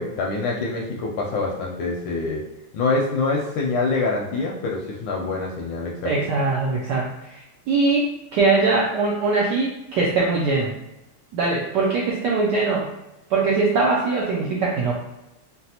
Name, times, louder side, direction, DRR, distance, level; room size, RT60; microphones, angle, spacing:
voice 1, 0.0-2.4 2.7-6.1, left 3 dB, 75° left, -1 dB, 1.1 m, -25 dB
voice 2, 6.0-10.7 11.3-12.9 13.3-14.9, right 3 dB, 80° right, -3 dB, 0.9 m, -22 dB
4.0 x 2.1 x 2.8 m, 0.94 s
omnidirectional pair, 2.4 m